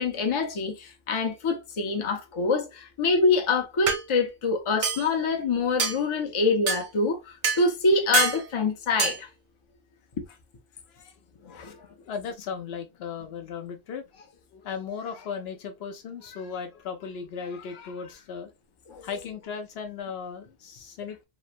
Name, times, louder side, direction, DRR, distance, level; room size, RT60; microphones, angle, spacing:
voice 1, 0.0-7.2 7.6-9.3 11.5-11.8 18.9-19.1, left 3 dB, 35° left, 0.5 m, -25 dB
sound 1, 3.2-3.3 3.9-4.0 4.8-5.1 5.8-6.0 6.7-6.8 7.4-7.6 8.1-8.4 9.0-9.2, right 5 dB, 55° right, 0.6 m, -25 dB
voice 2, 11.5-18.5 19.0-21.2, left 6 dB, 70° left, 0.8 m, -37 dB
3.0 x 2.1 x 2.4 m
omnidirectional pair, 1.1 m